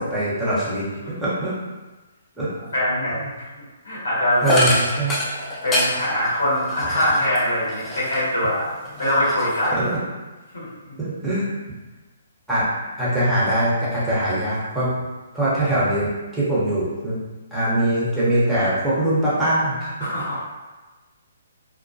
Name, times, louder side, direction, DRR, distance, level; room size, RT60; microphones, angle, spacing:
voice 1, 0.0-1.5 2.4-2.5 4.4-5.2 7.9-8.0 9.7-9.9 11.0-11.5 12.5-12.7 13.0-14.9 15.3-16.1 16.3-17.2 17.5-19.9, right 1 dB, 5° right, -11 dB, 0.8 m, -22 dB
voice 2, 2.7-3.5 3.8-4.8 5.6-8.7 9.0-9.8 10.5-10.7 20.0-20.4, left 1 dB, 85° left, -8 dB, 1.3 m, -22 dB
sound 1, 4.4-8.4 8.8-10.0, left 1 dB, 15° left, 0.4 m, -26 dB
2.2 x 2.1 x 2.6 m, 1.2 s
hypercardioid pair, 140°, 0 cm